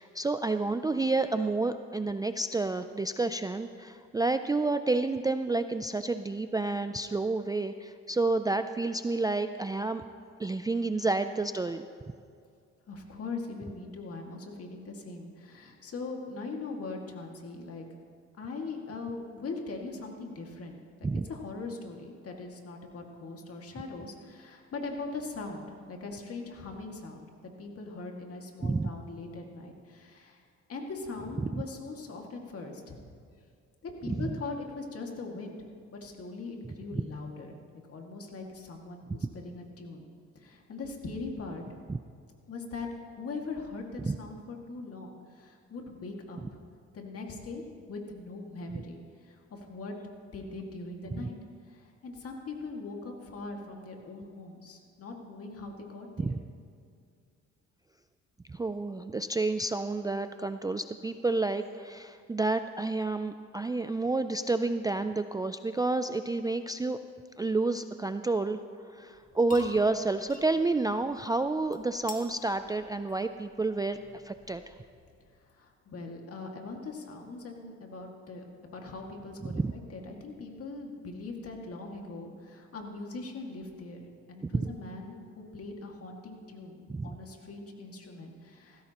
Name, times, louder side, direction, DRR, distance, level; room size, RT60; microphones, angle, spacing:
voice 1, 0.0-10.0 10.4-11.9 21.0-21.2 28.6-28.9 34.1-34.3 36.9-37.0 39.2-39.3 41.9-42.0 44.0-44.2 51.1-51.3 56.2-56.4 58.5-67.0 67.4-68.6 68.9-74.7 79.4-79.7 84.4-84.7 86.9-87.2, right 3 dB, 15° right, 9 dB, 0.4 m, -30 dB
voice 2, 12.9-17.9 18.4-30.4 30.7-33.0 33.8-37.6 37.9-40.0 40.4-41.6 42.5-46.6 46.9-47.6 47.9-49.9 50.3-51.3 51.6-56.4 75.5-88.8, left 3 dB, 50° left, 1 dB, 2.1 m, -41 dB
sound 1, 69.1-75.5, left 2 dB, 25° left, 2.0 m, -51 dB
18.0 x 15.5 x 3.0 m, 2.2 s
cardioid pair, 90°, 30 cm